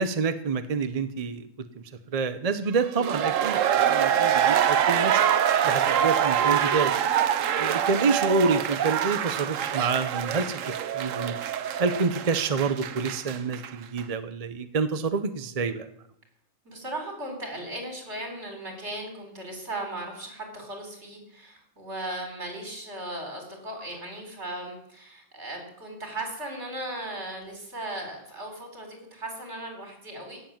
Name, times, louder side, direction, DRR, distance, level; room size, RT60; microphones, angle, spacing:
voice 1, 0.0-1.5 2.1-5.2 5.6-6.9 7.6-10.7 11.0-11.3 11.8-15.9, right 4 dB, 35° right, 10 dB, 0.7 m, -27 dB
sound 1, 2.8-13.7 14.0-14.1, right 9 dB, 75° right, 1.1 m, -25 dB
voice 2, 16.6-30.4, right 1 dB, 60° right, 3 dB, 4.3 m, -37 dB
16.5 x 7.5 x 7.3 m, 0.73 s
omnidirectional pair, 1.4 m